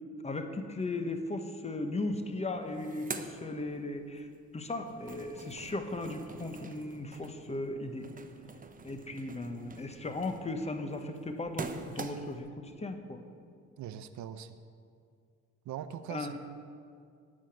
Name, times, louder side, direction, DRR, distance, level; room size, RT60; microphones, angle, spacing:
voice 1, 0.2-4.3 4.5-8.1 8.8-13.2 16.1-16.4, left 2 dB, 20° left, 6 dB, 1.2 m, -37 dB
sound 1, 2.1-2.2 2.4-4.2 4.6-12.5, right 4 dB, 25° right, 0.9 m, -45 dB
voice 2, 13.8-14.6 15.7-16.4, right 10 dB, 70° right, 11 dB, 0.6 m, -41 dB
12.5 x 5.9 x 8.9 m, 2.3 s
cardioid pair, 90°, 30 cm